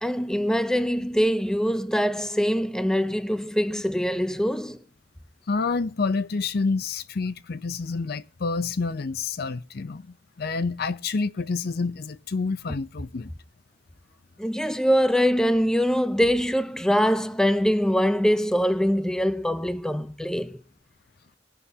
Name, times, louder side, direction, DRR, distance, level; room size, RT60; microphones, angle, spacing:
voice 1, 0.0-4.8 14.4-20.6, equal, 5° left, 0.5 m, -23 dB
voice 2, 5.5-10.1 10.4-13.3, left 4 dB, 55° left, 0.6 m, -28 dB
20.0 x 11.0 x 2.8 m
head